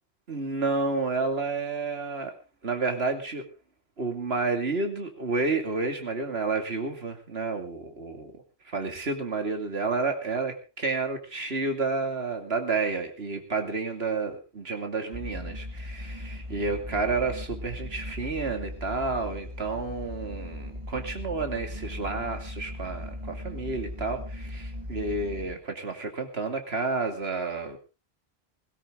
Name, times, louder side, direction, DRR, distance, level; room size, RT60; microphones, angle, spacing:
voice 1, 0.3-2.3 2.6-3.4 4.0-8.4 8.6-27.8, right 3 dB, 70° right, 5 dB, 2.6 m, -30 dB
sound 1, 15.1-25.5, left 1 dB, 30° right, 2.3 m, -38 dB
18.0 x 16.5 x 3.7 m, 0.31 s
omnidirectional pair, 1.1 m